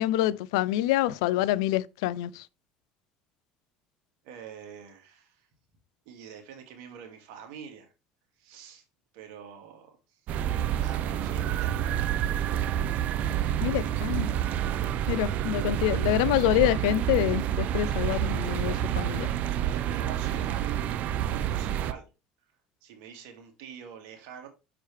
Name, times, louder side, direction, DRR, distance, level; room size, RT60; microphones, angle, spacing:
voice 1, 0.0-2.5 13.6-14.3 15.1-19.3, left 14 dB, 85° left, 0.4 m, -26 dB
voice 2, 4.2-5.5 6.1-7.9 8.4-8.8 9.1-10.2 10.8-12.0 13.5-13.9 15.1-16.2 19.7-20.9 21.3-22.1 22.8-24.5, right 8 dB, 75° right, 2.1 m, -46 dB
sound 1, 10.3-21.9, right 11 dB, 60° right, 0.6 m, -28 dB
6.3 x 4.8 x 3.2 m
supercardioid pair, 90°, 3 cm